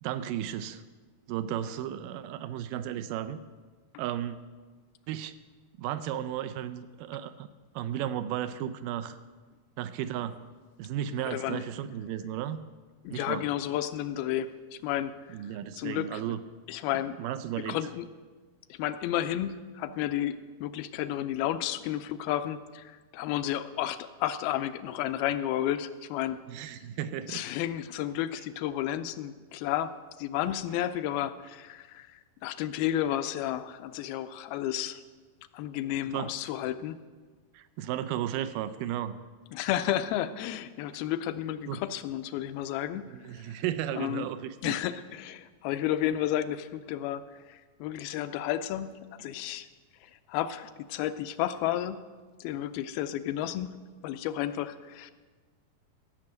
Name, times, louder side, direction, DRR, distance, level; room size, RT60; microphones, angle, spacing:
voice 1, 0.0-0.8 1.3-3.4 4.0-4.4 5.1-5.3 5.8-7.5 7.8-9.2 9.8-10.4 10.8-12.6 13.1-13.4 15.3-16.4 17.2-17.8 26.5-27.4 36.1-36.3 37.5-39.2 41.7-41.8 43.1-44.7, right 11 dB, 85° right, 12 dB, 1.9 m, -34 dB
voice 2, 11.3-11.7 13.0-16.2 16.7-17.2 17.6-18.1 18.7-26.4 27.3-29.9 30.2-35.0 35.5-37.0 39.5-43.2 43.4-43.6 43.9-44.3 44.6-49.7 50.0-52.0 52.4-53.8 54.0-55.1, left 12 dB, 80° left, 11 dB, 2.4 m, -32 dB
16.5 x 6.0 x 7.9 m, 1.4 s
omnidirectional pair, 4.3 m